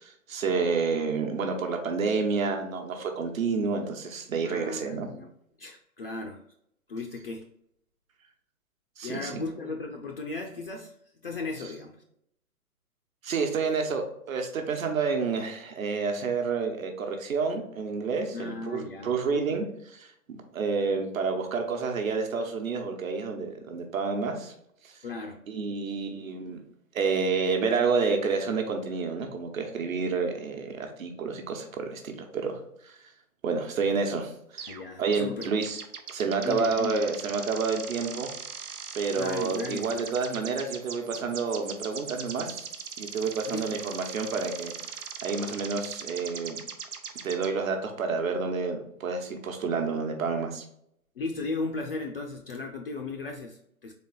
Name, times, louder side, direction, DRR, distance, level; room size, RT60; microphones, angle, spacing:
voice 1, 0.0-5.1 9.0-9.4 13.2-24.5 24.8-25.0 25.5-26.6 26.9-33.0 33.4-34.7 35.0-35.8 36.1-38.3 38.9-42.7 43.0-46.6 47.2-50.6, right 4 dB, 60° right, 4 dB, 1.1 m, -29 dB
voice 2, 4.4-5.3 5.6-6.4 6.9-7.5 9.0-10.9 11.2-12.0 18.3-19.4 25.0-25.4 34.7-35.5 36.4-37.0 39.1-39.9 43.5-43.6 51.2-53.9, left 3 dB, 40° left, 2 dB, 0.4 m, -36 dB
sound 1, 34.6-34.8 35.1-47.5, right 6 dB, 85° right, 0.8 m, -40 dB
3.9 x 3.4 x 3.8 m, 0.73 s
hypercardioid pair, 145°, 45 cm